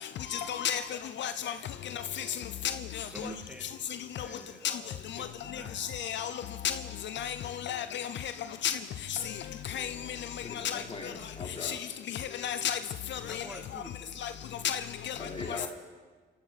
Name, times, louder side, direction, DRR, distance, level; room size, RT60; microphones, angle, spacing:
voice 1, 0.3-0.8 1.2-1.5 1.9-2.2 2.9-3.1 4.6-4.8 5.7-6.3 6.6-6.7 7.1-7.4 7.6-8.3 8.6-8.8 9.1-9.2 9.7-10.2 10.6-10.8 11.6-11.8 12.1-12.8 13.1-13.4 13.7-13.8 14.2-14.3 14.6-15.1, left 9 dB, 65° left, 0.6 m, -32 dB
voice 2, 3.1-3.7 4.2-5.8 13.3-14.2, right 1 dB, 5° right, 2.3 m, -47 dB
voice 3, 10.4-11.8 15.2-15.7, left 3 dB, 30° left, 3.6 m, -41 dB
26.0 x 13.5 x 4.2 m
cardioid pair, 90°, 20 cm